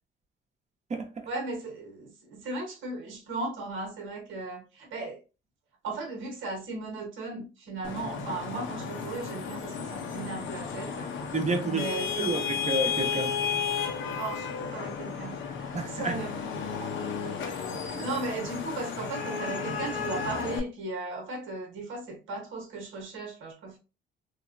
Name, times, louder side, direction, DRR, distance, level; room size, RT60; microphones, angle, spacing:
voice 1, 1.2-5.2 5.8-11.1 11.7-12.3 14.1-16.5 16.8-16.9 17.4-23.8, right 3 dB, 80° right, 1.0 m, -37 dB
Vehicle horn car horn honking / Traffic noise roadway noise, 7.8-20.6, left 6 dB, 75° left, 0.6 m, -33 dB
voice 2, 11.3-11.9 12.2-13.3 15.7-16.2 18.0-18.1, right 3 dB, 35° right, 0.8 m, -29 dB
3.0 x 2.1 x 2.5 m
cardioid pair, 90°, 20 cm